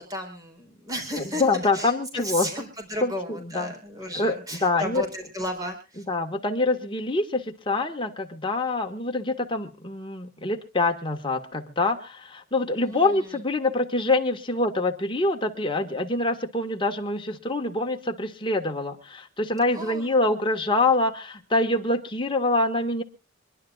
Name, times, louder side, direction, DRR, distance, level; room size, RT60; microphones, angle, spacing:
voice 1, 0.0-1.4 1.7-1.9 2.2-6.0 12.8-13.1 19.7-20.1, equal, 15° right, 3 dB, 4.3 m, -34 dB
voice 2, 1.2-2.5 3.0-3.7 4.2-5.1 6.1-23.0, left 2 dB, 25° left, 3 dB, 1.7 m, -25 dB
25.5 x 11.5 x 2.4 m, 0.31 s
head